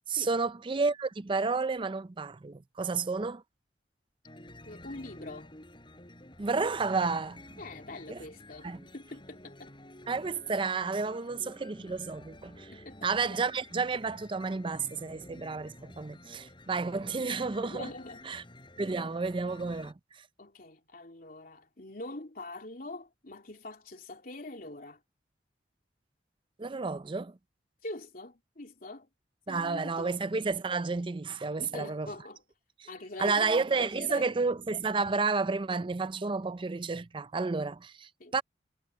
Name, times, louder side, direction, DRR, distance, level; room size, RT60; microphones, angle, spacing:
voice 1, 0.1-3.4 6.4-7.4 8.1-8.2 8.6-8.8 10.1-12.7 13.0-17.9 18.3-18.4 18.8-19.9 26.6-27.4 29.5-32.1 33.2-38.4, right 4 dB, 30° right, 0.5 m, -31 dB
sound 1, 4.2-19.9, left 1 dB, 25° left, 6.0 m, -51 dB
voice 2, 4.5-5.5 7.6-9.7 12.7-13.4 17.6-18.2 20.4-25.0 27.8-29.1 29.5-30.3 31.6-32.4 32.9-34.3 38.2-38.3, left 2 dB, 55° left, 3.3 m, -44 dB
head